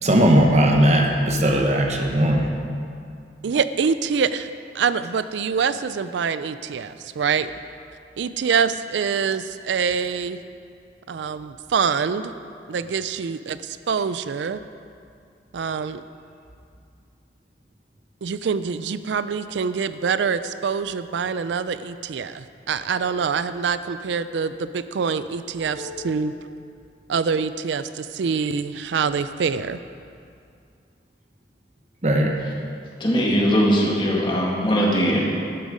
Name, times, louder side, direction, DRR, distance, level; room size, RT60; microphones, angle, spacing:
voice 1, 0.0-2.5 25.6-26.1 32.0-32.3, right 1 dB, 40° right, 2 dB, 1.1 m, -18 dB
voice 2, 3.4-7.5 8.2-10.4 11.1-12.3 12.7-14.6 15.5-16.0 18.2-26.3 27.1-29.8, right 6 dB, 80° right, 13 dB, 0.4 m, -25 dB
voice 3, 33.0-35.2, equal, 25° left, -3 dB, 2.1 m, -20 dB
12.5 x 10.5 x 5.0 m, 2.4 s
head